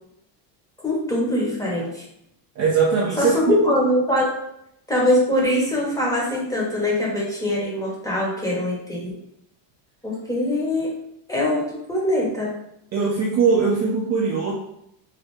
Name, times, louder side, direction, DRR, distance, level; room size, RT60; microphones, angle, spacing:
voice 1, 0.8-2.0 3.2-4.3 4.9-9.1 10.0-11.0 11.3-12.5, left 1 dB, 5° left, -4 dB, 0.8 m, -22 dB
voice 2, 2.6-3.5 12.9-14.5, right 5 dB, 35° right, -4 dB, 0.5 m, -20 dB
3.2 x 2.4 x 3.1 m, 0.77 s
cardioid pair, 130°, 50 cm